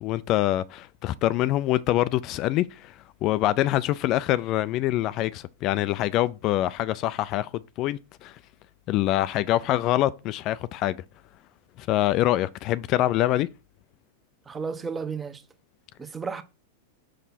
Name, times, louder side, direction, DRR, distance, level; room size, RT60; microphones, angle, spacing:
voice 1, 0.0-2.9 3.2-7.5 7.8-8.4 8.9-11.0 11.8-13.5, left 14 dB, 45° left, 0.3 m, -25 dB
voice 2, 14.5-15.4 16.0-16.4, right 5 dB, 20° right, 0.9 m, -33 dB
5.7 x 5.3 x 4.2 m
hypercardioid pair, 100°, 0 cm